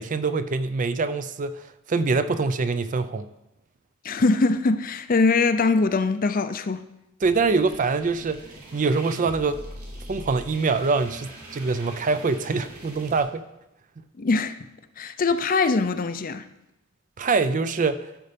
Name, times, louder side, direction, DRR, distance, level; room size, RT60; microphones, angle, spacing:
voice 1, 0.0-3.3 7.2-8.4 8.7-9.6 10.1-13.4 17.2-18.1, right 4 dB, 35° right, 0.4 m, -24 dB
voice 2, 4.0-6.8 14.2-14.6 15.0-16.4, left 3 dB, 40° left, 0.5 m, -22 dB
sound 1, 7.2-13.2, right 1 dB, 75° right, 2.6 m, -42 dB
12.5 x 5.5 x 5.1 m
head